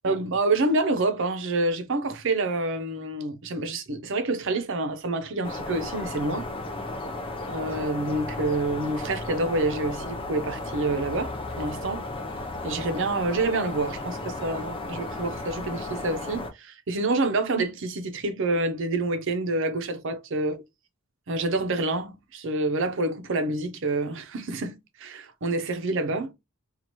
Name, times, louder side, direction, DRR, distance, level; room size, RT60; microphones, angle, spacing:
voice 1, 0.0-6.5 7.5-12.0 12.6-20.6 21.3-26.3, right 2 dB, 65° right, 0.7 m, -27 dB
sound 1, 5.4-16.5, left 2 dB, 25° left, 0.5 m, -34 dB
2.9 x 2.4 x 4.2 m
head